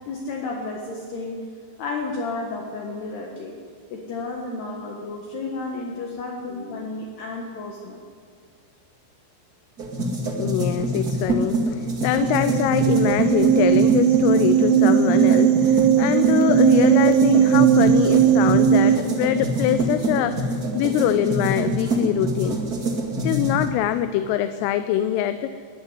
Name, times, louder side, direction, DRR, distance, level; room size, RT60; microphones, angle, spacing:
voice 1, 0.1-1.4 1.8-3.6 3.9-8.0, left 3 dB, 60° left, 0 dB, 3.2 m, -32 dB
sound 1, 9.8-23.7, right 1 dB, 70° right, 0.8 m, -25 dB
voice 2, 10.4-22.6 23.2-25.5, left 11 dB, 80° left, 10 dB, 3.3 m, -23 dB
sound 2, 12.2-19.0, right 10 dB, 90° right, 2.3 m, -18 dB
21.0 x 13.0 x 9.7 m, 2.1 s
omnidirectional pair, 6.0 m